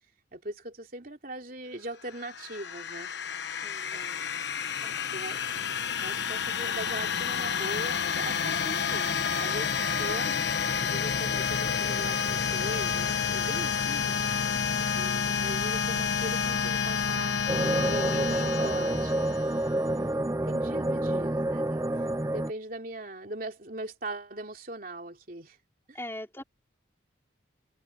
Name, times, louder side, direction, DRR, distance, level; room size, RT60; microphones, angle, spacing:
voice 1, 0.3-3.1 3.9-4.3 5.1-5.7 6.0-14.2 14.9-17.4 17.8-19.3 19.9-25.6 25.9-26.0, right 1 dB, 45° right, 3.4 m, -40 dB
sound 1, 2.1-19.7, left 6 dB, 60° left, 1.1 m, -29 dB
voice 2, 3.6-4.0 4.8-5.2 14.5-15.0 25.9-26.4, left 1 dB, 10° left, 4.2 m, -43 dB
sound 2, 17.5-22.5, right 1 dB, 15° right, 0.7 m, -28 dB
head